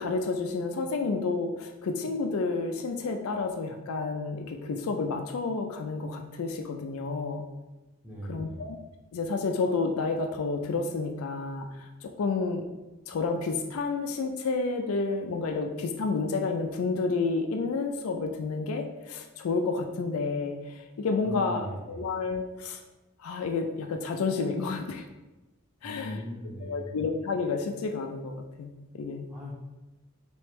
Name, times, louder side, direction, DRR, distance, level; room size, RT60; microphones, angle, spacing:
voice 1, 0.0-7.5 8.2-8.8 9.1-12.7 13.1-22.8 23.2-25.1 25.8-26.2 26.6-29.3, left 4 dB, 75° left, 4 dB, 0.4 m, -30 dB
voice 2, 8.0-8.6 21.2-21.9 25.8-27.0 29.3-29.5, equal, 5° right, -4 dB, 0.8 m, -39 dB
3.4 x 3.1 x 3.3 m, 1.1 s
head